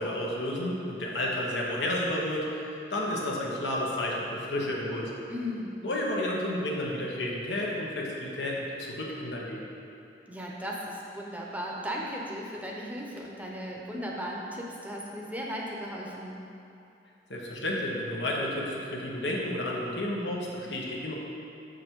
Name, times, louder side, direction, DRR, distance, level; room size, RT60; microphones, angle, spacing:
voice 1, 0.0-5.2 5.8-9.6 17.3-21.1, left 1 dB, 90° left, -3 dB, 1.2 m, -31 dB
voice 2, 5.3-5.8 10.3-16.4, equal, 10° right, -2 dB, 0.7 m, -36 dB
6.5 x 5.3 x 4.6 m, 2.7 s
head